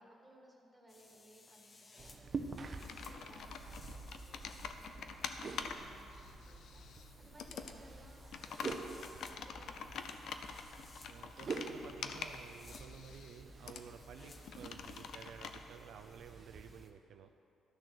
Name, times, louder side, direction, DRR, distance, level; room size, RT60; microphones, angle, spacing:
voice 1, 0.0-10.3, right 1 dB, 15° right, 0 dB, 2.1 m, -63 dB
sound 1, 0.9-16.9, left 3 dB, 35° left, 1.1 m, -63 dB
sound 2, 2.0-16.9, right 4 dB, 40° right, 0.8 m, -48 dB
Computer keyboard, 2.7-15.6, left 6 dB, 70° left, 0.6 m, -47 dB
voice 2, 11.1-17.3, right 7 dB, 80° right, 6 dB, 0.4 m, -53 dB
12.5 x 6.5 x 6.4 m, 2.7 s
cardioid pair, 90°, 0 cm